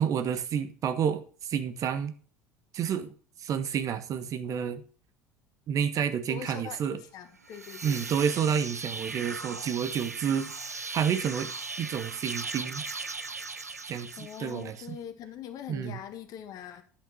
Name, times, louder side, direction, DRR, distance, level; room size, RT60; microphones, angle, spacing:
voice 1, 0.0-2.1 2.7-3.1 3.4-4.8 5.7-7.0 7.8-10.5 10.9-11.5 11.8-12.8 13.9-14.7 15.7-16.0, right 8 dB, 40° right, 11 dB, 1.0 m, -29 dB
voice 2, 6.3-8.1 14.2-16.8, left 9 dB, 50° left, 9 dB, 1.5 m, -42 dB
sound 1, 7.4-14.8, right 4 dB, 90° right, 0.5 m, -38 dB
10.0 x 5.8 x 6.1 m, 0.40 s
figure-of-eight pair, 70°, 8 cm